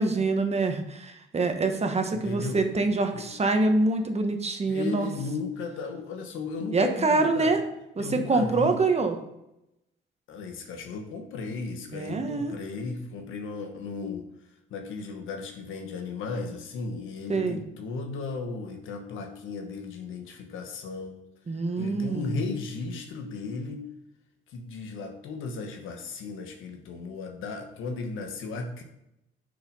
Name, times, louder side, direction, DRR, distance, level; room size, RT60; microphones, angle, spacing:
voice 1, 0.0-5.1 6.7-7.6 8.0-9.1 11.9-12.5 17.3-17.6 21.5-22.4, right 3 dB, 30° right, 5 dB, 1.2 m, -25 dB
voice 2, 2.1-2.7 3.1-3.3 4.7-7.6 8.0-8.8 10.3-14.2 14.7-21.2 21.8-23.9 24.5-28.8, left 4 dB, 85° left, 4 dB, 1.4 m, -35 dB
7.1 x 5.7 x 5.4 m, 0.86 s
cardioid pair, 90°, 20 cm